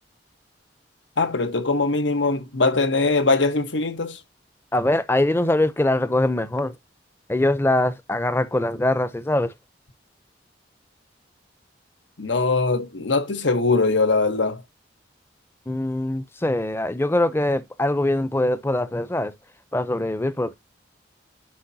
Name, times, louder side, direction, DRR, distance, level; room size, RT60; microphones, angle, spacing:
voice 1, 1.2-4.2 12.2-14.6, left 3 dB, 90° left, 1.3 m, -21 dB
voice 2, 4.7-6.7 7.3-9.5 15.7-19.3 19.7-20.5, left 1 dB, 15° left, 0.6 m, -22 dB
10.5 x 5.2 x 2.8 m
head